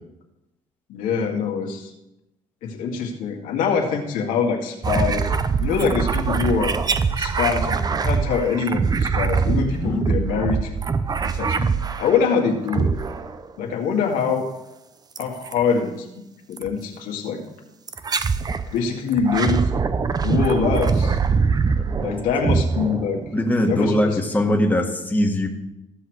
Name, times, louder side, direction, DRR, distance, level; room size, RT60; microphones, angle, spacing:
voice 1, 0.9-1.9 2.6-5.3 5.6-6.8 7.2-10.7 11.3-12.9 13.6-14.5 15.2-16.1 16.5-17.4 18.7-19.7 20.2-21.2 22.0-23.2 23.7-24.2, left 5 dB, 85° left, 1 dB, 1.9 m, -24 dB
sound 1, 4.8-12.3 12.7-13.5 15.2-15.6 16.6-16.7 17.9-18.7 19.1-23.5, right 5 dB, 30° right, 0.6 m, -23 dB
voice 2, 9.7-10.0 21.8-22.1 23.3-25.5, left 1 dB, 10° left, 2 dB, 1.5 m, -22 dB
14.5 x 6.1 x 4.7 m, 0.91 s
cardioid pair, 100°, 14 cm